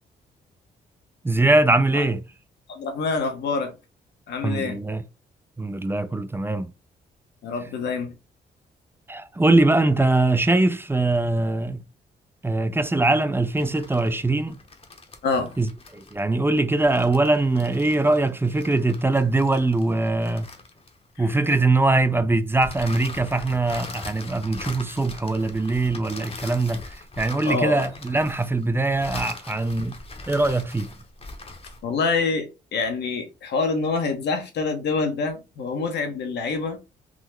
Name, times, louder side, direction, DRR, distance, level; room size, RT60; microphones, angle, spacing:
voice 1, 1.2-2.2 4.4-5.0 5.6-6.7 9.1-11.8 12.4-14.6 15.6-20.5 21.2-30.0 30.3-30.9, right 2 dB, 10° right, 0.4 m, -22 dB
voice 2, 2.7-3.8 4.3-4.8 7.4-8.1 15.2-15.5 21.2-21.3 27.4-27.9 31.8-36.8, left 4 dB, 75° left, 0.9 m, -26 dB
sound 1, 13.5-21.3 22.6-31.9, left 2 dB, 35° left, 0.9 m, -41 dB
3.7 x 2.0 x 3.1 m
cardioid pair, 65°, 18 cm